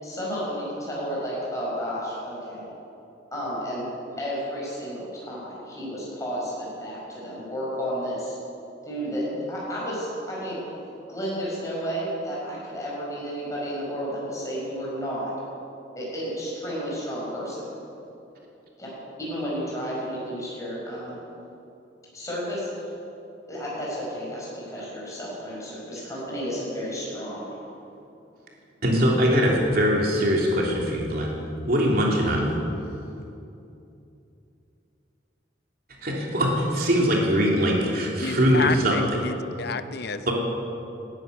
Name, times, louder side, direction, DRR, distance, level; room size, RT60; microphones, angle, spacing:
voice 1, 0.0-2.6 3.3-3.9 4.2-8.3 8.8-10.6 11.1-15.3 15.9-17.7 18.8-21.1 22.1-22.7 23.5-27.5, equal, 20° left, -6 dB, 4.9 m, -32 dB
voice 2, 28.8-32.5 36.0-39.0 40.3-40.4, equal, 55° right, -2 dB, 3.1 m, -22 dB
voice 3, 38.2-40.3, left 5 dB, 60° left, 11 dB, 0.7 m, -30 dB
13.5 x 10.5 x 9.3 m, 2.8 s
head